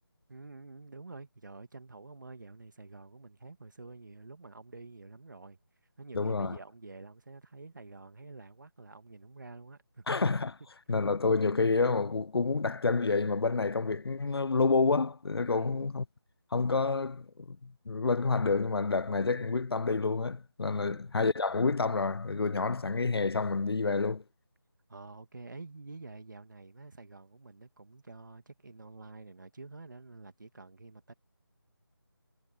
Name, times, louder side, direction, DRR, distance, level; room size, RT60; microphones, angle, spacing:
voice 1, 0.3-5.6 6.0-10.0 15.6-15.9 20.8-21.0 24.9-31.1, right 3 dB, 55° right, 2.2 m, -48 dB
voice 2, 6.1-6.6 10.1-10.6 10.9-16.0 16.5-24.2, left 4 dB, 90° left, 0.5 m, -28 dB
figure-of-eight pair, 175°, 12 cm